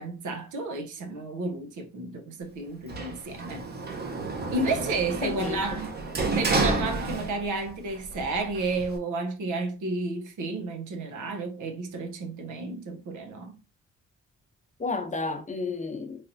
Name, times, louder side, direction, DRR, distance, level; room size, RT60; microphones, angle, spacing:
voice 1, 0.0-3.7 4.5-5.9 6.3-13.6, right 3 dB, 80° right, 0.8 m, -32 dB
Sliding door, 2.9-7.7 8.0-9.0, right 3 dB, 35° right, 0.8 m, -30 dB
voice 2, 5.2-5.8 14.8-16.3, left 3 dB, 25° left, 0.7 m, -32 dB
3.2 x 2.9 x 2.6 m
cardioid pair, 90°, 30 cm